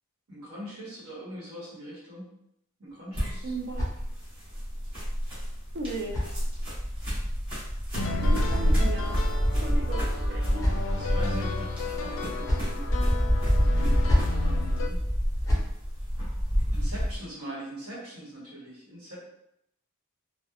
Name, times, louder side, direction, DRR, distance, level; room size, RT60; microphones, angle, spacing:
voice 1, 0.3-2.3 2.8-3.5 10.9-12.9 13.5-15.0 16.7-19.2, right 1 dB, 75° right, -6 dB, 1.0 m, -41 dB
sound 1, 2.9-4.5 5.5-6.9 7.9-9.3 10.1-11.1 12.1-12.8 13.8-14.4 15.2-15.7, left 1 dB, 15° left, 0.6 m, -32 dB
sound 2, 3.1-17.2, equal, 25° right, 1.0 m, -27 dB
voice 2, 3.4-3.9 5.7-6.2 8.2-9.2 9.6-10.7, right 2 dB, 50° right, 1 dB, 0.4 m, -36 dB
sound 3, 7.9-14.9, left 3 dB, 60° left, 0.3 m, -34 dB
2.8 x 2.0 x 2.3 m, 0.77 s
head